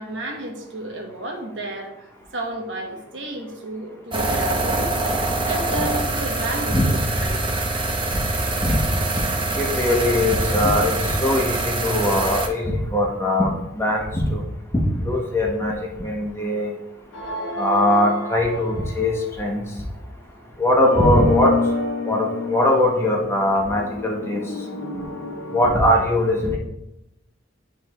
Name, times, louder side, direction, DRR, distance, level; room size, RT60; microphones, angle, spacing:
voice 1, 0.0-2.0 2.3-5.0 5.5-7.4, right 1 dB, 85° right, 1 dB, 1.3 m, -32 dB
sound 1, 4.1-12.5, right 2 dB, 25° right, 0.7 m, -24 dB
voice 2, 9.5-14.4 14.7-16.7 17.6-19.6 20.6-21.5 22.1-24.4 25.5-26.6, left 1 dB, 15° left, -1 dB, 1.0 m, -21 dB
sound 2, 17.1-19.6 20.8-25.9, left 2 dB, 70° left, 1.0 m, -29 dB
10.0 x 3.6 x 3.1 m, 0.89 s
head